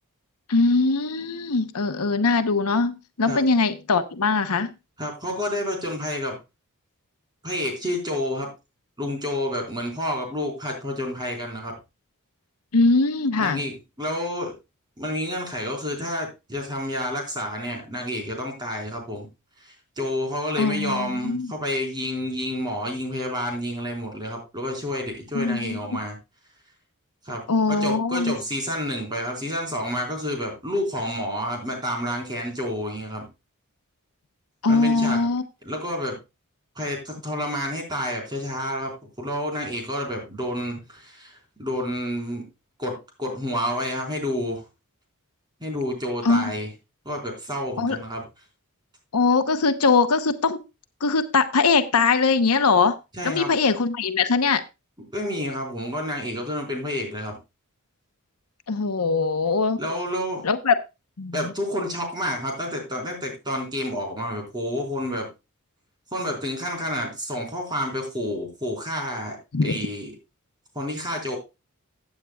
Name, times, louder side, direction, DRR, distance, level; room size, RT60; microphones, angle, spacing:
voice 1, 0.5-4.7 12.7-13.6 20.6-21.5 25.3-25.8 27.5-28.3 34.6-35.4 46.2-46.5 47.8-48.0 49.1-50.6 51.0-53.0 53.2-54.6 58.7-59.8 60.4-60.7 61.2-61.5 69.5-69.8, left 4 dB, 80° left, 9 dB, 0.9 m, -21 dB
voice 2, 5.0-6.4 7.4-8.5 9.0-11.7 13.4-14.5 15.0-19.3 19.6-26.2 27.2-27.4 27.7-33.3 34.7-35.3 35.6-36.2 36.8-42.4 42.8-44.6 45.6-46.7 47.0-48.3 53.2-53.5 55.1-57.3 59.8-60.4 61.3-65.3 66.1-70.1 70.7-71.4, equal, 20° right, 2 dB, 4.2 m, -29 dB
15.5 x 8.8 x 2.3 m, 0.25 s
head